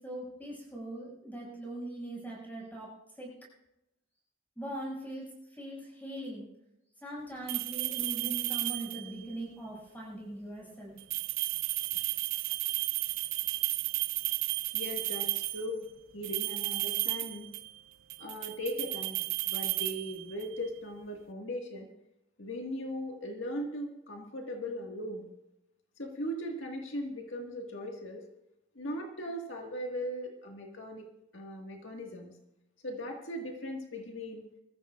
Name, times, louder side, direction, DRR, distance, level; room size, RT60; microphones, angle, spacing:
voice 1, 0.0-2.9 3.2-3.3 4.6-6.5 7.0-11.0, right 1 dB, 10° left, -4 dB, 6.1 m, -41 dB
sound 1, 7.5-9.2 11.0-15.7 16.2-17.8 18.1-20.6, right 18 dB, 85° right, 0.4 m, -33 dB
voice 2, 14.7-15.9 16.1-17.5 18.2-21.9 22.4-25.3 26.0-28.2 28.8-31.1 31.3-32.4 32.8-34.4, equal, 80° left, 1 dB, 1.8 m, -38 dB
23.5 x 14.5 x 2.5 m, 0.85 s
head